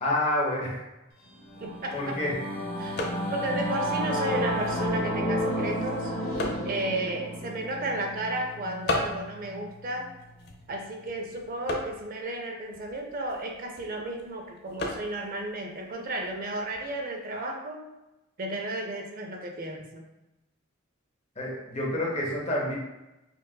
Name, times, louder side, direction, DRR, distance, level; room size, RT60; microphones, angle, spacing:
voice 1, 0.0-0.9 1.9-2.3 21.4-22.7, left 1 dB, 30° left, -3 dB, 0.9 m, -28 dB
Singing / Musical instrument, 1.3-11.0, equal, 80° left, 1.0 m, -32 dB
sound 1, 1.4-17.0, left 1 dB, 55° left, 0.6 m, -39 dB
voice 2, 1.6-2.0 2.8-6.1 6.6-10.1 10.7-17.8 18.4-20.0, right 1 dB, 45° right, 2 dB, 0.5 m, -33 dB
5.4 x 2.5 x 2.2 m, 0.96 s
head